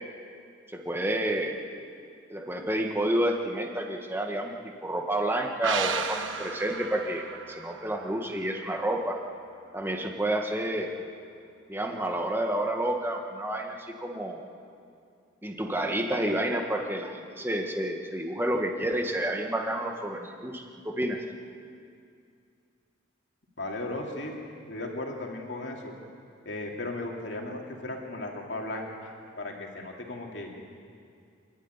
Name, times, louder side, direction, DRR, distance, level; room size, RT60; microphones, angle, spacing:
voice 1, 0.7-1.5 2.3-4.5 4.8-9.2 9.7-10.9 11.7-14.4 15.4-21.2, right 1 dB, 10° right, 2 dB, 1.5 m, -29 dB
sound 1, 5.6-9.1 9.4-9.5, right 6 dB, 80° right, 1.2 m, -35 dB
voice 2, 23.6-24.3 24.7-25.9 26.4-30.5, left 2 dB, 65° left, 0 dB, 3.1 m, -36 dB
27.0 x 12.0 x 9.7 m, 2.4 s
head